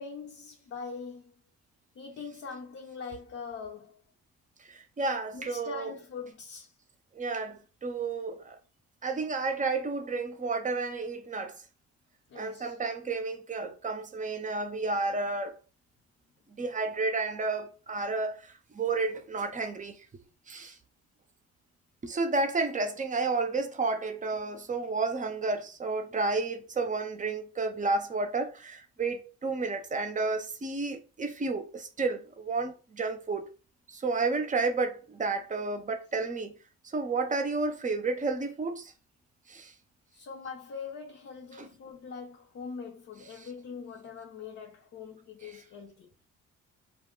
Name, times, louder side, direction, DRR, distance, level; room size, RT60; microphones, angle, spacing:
voice 1, 0.0-1.3 2.0-4.0 5.3-6.7 12.3-12.8 40.1-46.1, left 5 dB, 50° left, 0.7 m, -42 dB
voice 2, 4.6-5.9 7.1-8.6 9.0-11.6 12.3-15.6 16.5-20.8 22.0-33.5 33.9-36.6 36.8-38.9 39.5-39.7 41.6-41.7 43.4-43.5 45.4-45.6, right 3 dB, 25° right, 0.6 m, -31 dB
2.3 x 2.2 x 3.6 m
cardioid pair, 90°, 30 cm